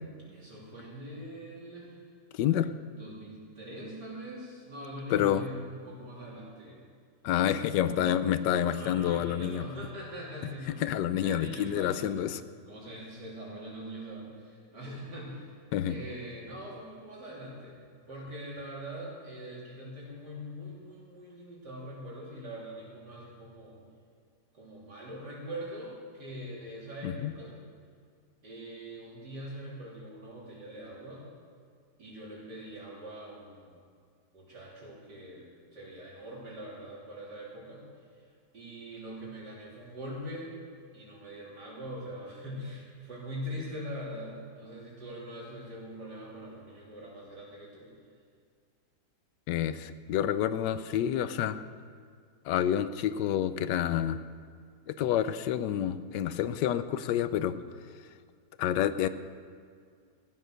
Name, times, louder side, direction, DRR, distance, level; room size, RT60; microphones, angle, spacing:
voice 1, 0.3-2.0 2.9-6.8 7.5-10.8 11.2-12.1 12.7-15.5 15.8-17.8 18.1-23.8 24.5-27.6 28.4-31.2 32.0-33.7 34.3-37.8 38.5-40.5 40.9-47.9, equal, 75° right, -5 dB, 4.1 m, -43 dB
voice 2, 2.3-2.7 5.1-5.4 7.2-9.6 10.8-12.4 15.7-16.0 27.0-27.3 49.5-51.6 52.5-54.2 54.9-57.6 58.6-59.1, left 10 dB, 85° left, 13 dB, 1.3 m, -28 dB
15.0 x 9.5 x 6.4 m, 2.1 s
omnidirectional pair, 1.8 m